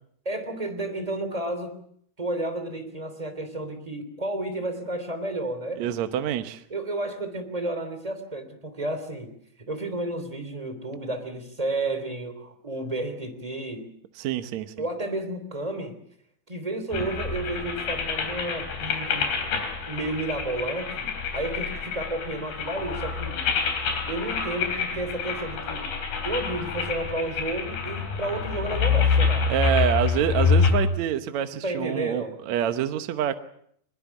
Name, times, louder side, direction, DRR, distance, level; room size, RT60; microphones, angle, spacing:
voice 1, 0.2-1.8 2.2-5.8 6.7-13.9 14.8-16.0 16.5-19.3 19.9-23.5 24.1-25.9 26.2-29.5 31.6-32.4, right 2 dB, 10° right, 8 dB, 2.7 m, -32 dB
voice 2, 5.8-6.6 14.2-14.7 29.5-33.4, right 10 dB, 65° right, 9 dB, 1.9 m, -26 dB
sound 1, 16.9-30.7, left 5 dB, 85° left, 5.4 m, -27 dB
22.5 x 21.5 x 7.1 m, 0.66 s
omnidirectional pair, 4.3 m